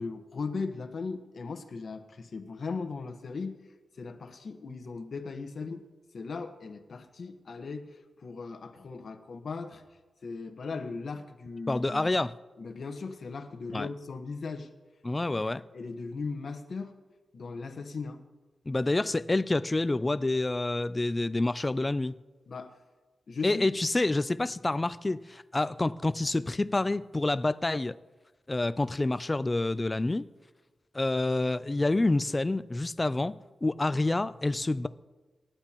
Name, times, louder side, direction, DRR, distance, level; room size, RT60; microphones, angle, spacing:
voice 1, 0.0-3.6 4.0-5.8 6.1-9.8 10.2-12.1 12.6-14.7 15.7-16.9 17.3-18.2 22.5-22.7 23.3-23.7, left 4 dB, 55° left, 1.2 m, -38 dB
voice 2, 11.7-12.3 13.7-13.9 15.0-15.6 18.7-22.1 23.4-27.9 28.5-30.2 30.9-33.3 33.6-34.9, left 2 dB, 20° left, 0.3 m, -28 dB
27.5 x 11.5 x 3.0 m
wide cardioid pair, 150°, 0 cm